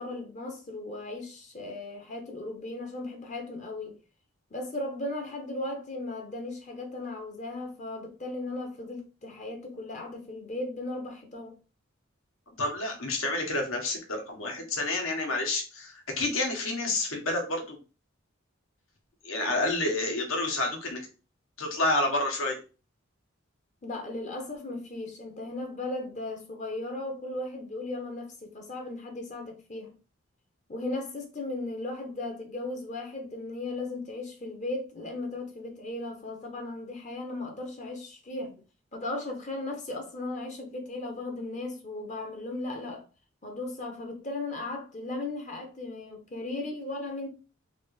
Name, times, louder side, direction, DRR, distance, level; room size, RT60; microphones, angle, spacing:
voice 1, 0.0-4.0 4.5-11.5 23.8-29.9 30.7-38.6 38.9-43.0 43.4-47.3, left 2 dB, 35° left, 0.6 m, -36 dB
voice 2, 12.6-17.8 19.2-21.1 21.6-22.6, left 2 dB, 80° left, 1.1 m, -29 dB
3.3 x 2.5 x 3.1 m
head